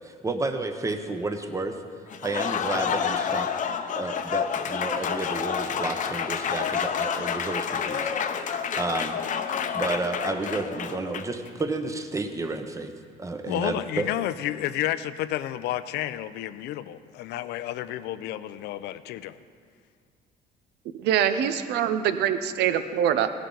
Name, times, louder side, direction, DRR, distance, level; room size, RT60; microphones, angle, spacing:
voice 1, 0.0-1.8 2.2-3.5 4.0-8.1 8.4-8.5 8.8-9.2 9.7-12.9 13.2-14.1, right 3 dB, 20° right, 7 dB, 0.9 m, -31 dB
Applause, 2.1-11.5, left 7 dB, 50° left, 0.8 m, -29 dB
voice 2, 13.5-19.4, left 13 dB, 80° left, 14 dB, 0.5 m, -31 dB
voice 3, 20.9-23.3, right 9 dB, 80° right, 11 dB, 0.7 m, -24 dB
16.5 x 11.0 x 3.9 m, 2.1 s
cardioid pair, 110°, 17 cm